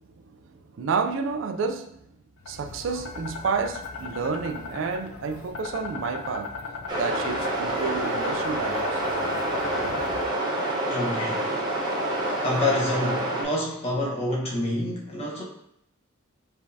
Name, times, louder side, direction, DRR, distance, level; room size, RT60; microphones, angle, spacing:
voice 1, 0.3-1.9 2.5-6.5 6.9-9.0 9.8-10.0, right 5 dB, 65° right, 0.4 m, -30 dB
sound 1, 2.4-10.2, left 4 dB, 75° left, 0.5 m, -38 dB
sound 2, 6.9-13.4, right 1 dB, 20° right, 0.9 m, -27 dB
voice 2, 10.8-11.5 12.4-15.4, left 1 dB, 30° left, 1.1 m, -27 dB
5.1 x 3.4 x 2.7 m
head